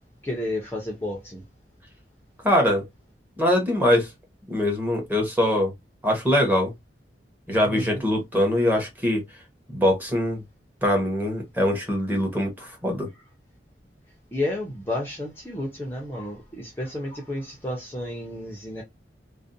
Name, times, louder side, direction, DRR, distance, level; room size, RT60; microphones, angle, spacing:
voice 1, 0.2-1.4 7.6-8.0 14.3-18.8, left 1 dB, 10° left, 0.6 m, -31 dB
voice 2, 2.4-2.9 3.4-4.1 4.5-5.7 6.0-6.7 7.5-9.2 9.7-10.4 10.8-13.1, left 1 dB, 10° right, 0.9 m, -22 dB
2.5 x 2.1 x 2.5 m
head